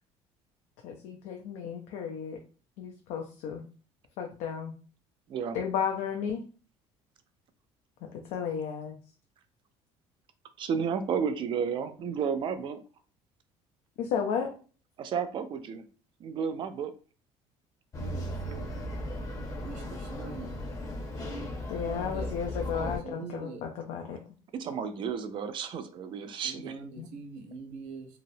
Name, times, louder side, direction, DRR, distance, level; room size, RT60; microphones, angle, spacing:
voice 1, 0.8-2.4 2.8-3.6 4.2-4.7 5.5-6.4 8.3-9.0 14.0-14.5 19.8-19.9 21.7-24.2 27.0-27.1, left 7 dB, 80° left, 2 dB, 0.4 m, -33 dB
voice 2, 10.6-12.8 15.0-15.8 16.2-16.9 24.5-26.8, right 7 dB, 45° right, 10 dB, 0.3 m, -32 dB
sound 1, 17.9-23.0, left 1 dB, 30° left, 0.6 m, -36 dB
voice 3, 18.0-18.7 19.6-20.5 21.9-22.3 22.7-23.6 26.5-28.1, right 4 dB, 85° right, 4 dB, 0.6 m, -43 dB
2.8 x 2.0 x 2.6 m, 0.38 s
cardioid pair, 125°, 12 cm